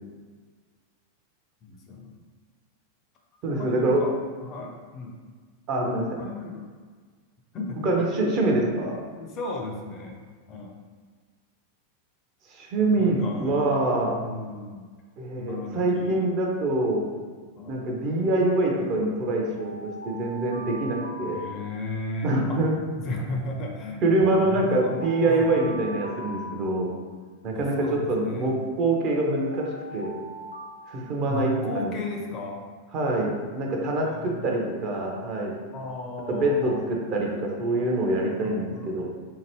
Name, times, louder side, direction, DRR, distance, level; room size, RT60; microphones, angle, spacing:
voice 1, 1.6-2.2 3.5-5.1 6.1-6.7 7.5-8.0 9.0-10.2 10.5-10.8 13.0-14.8 15.4-16.2 17.6-17.9 21.3-22.6 22.9-24.9 25.3-25.5 27.5-28.5 31.3-32.6 34.0-34.6 35.7-36.9 38.4-39.0, left 2 dB, 35° left, 1 dB, 0.5 m, -35 dB
voice 2, 3.4-4.0 5.7-6.2 7.8-9.0 12.5-14.2 15.2-17.0 17.7-21.4 22.2-22.7 24.0-26.9 27.4-29.7 29.9-30.1 30.9-31.9 32.9-35.5 36.3-39.0, right 2 dB, 40° right, -1 dB, 0.6 m, -25 dB
Alarm, 19.6-22.2 23.5-27.2 28.5-31.7, right 1 dB, 90° right, 0.3 m, -41 dB
2.8 x 2.5 x 3.0 m, 1.5 s
figure-of-eight pair, 90°, 0 cm